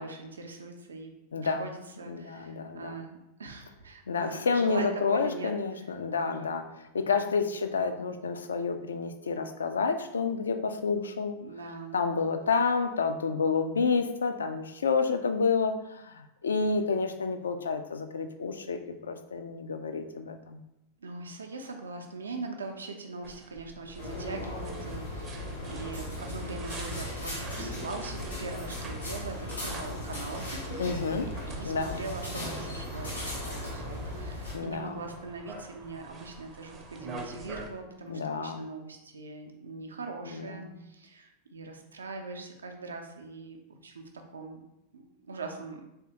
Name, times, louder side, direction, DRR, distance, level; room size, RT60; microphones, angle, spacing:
voice 1, 0.0-1.1 1.4-5.9 6.2-6.5 11.4-12.0 21.0-25.4 25.6-44.6 44.9-45.8, right 3 dB, 70° right, 3 dB, 0.5 m, -41 dB
voice 2, 1.3-1.6 2.1-3.0 4.1-6.6 6.9-11.4 11.9-20.6 30.8-31.3 31.6-32.0 34.5-35.0 38.1-38.7 40.3-40.8, left 5 dB, 70° left, 8 dB, 0.3 m, -29 dB
sound 1, 23.2-37.7, right 3 dB, 25° right, 0.5 m, -47 dB
sound 2, 24.0-34.5, left 1 dB, 85° left, 1.4 m, -37 dB
3.5 x 3.3 x 2.8 m, 0.89 s
figure-of-eight pair, 90°, 0 cm